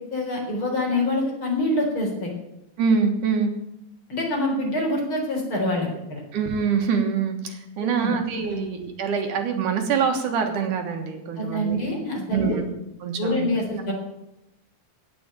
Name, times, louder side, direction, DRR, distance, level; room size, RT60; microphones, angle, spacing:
voice 1, 0.1-2.3 4.1-6.2 7.9-8.1 8.4-8.6 11.4-12.6 13.2-13.9, left 1 dB, 40° left, -1 dB, 4.6 m, -25 dB
voice 2, 2.8-3.5 6.3-11.8 12.3-12.7 13.0-13.5, right 6 dB, 70° right, 4 dB, 3.0 m, -24 dB
17.5 x 6.1 x 9.0 m, 0.88 s
omnidirectional pair, 3.7 m